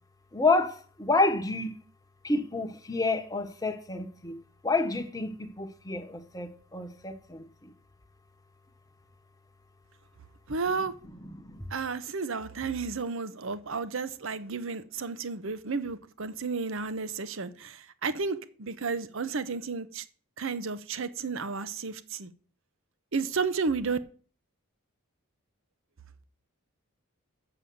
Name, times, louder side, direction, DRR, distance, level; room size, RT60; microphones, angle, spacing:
voice 1, 0.3-1.8 2.2-4.4 4.6-7.7 11.3-11.7, left 3 dB, 15° left, 1.0 m, -29 dB
voice 2, 10.5-10.9 11.7-20.0 20.4-22.3 23.1-24.0, right 4 dB, 60° right, 0.8 m, -32 dB
7.1 x 6.9 x 7.7 m
head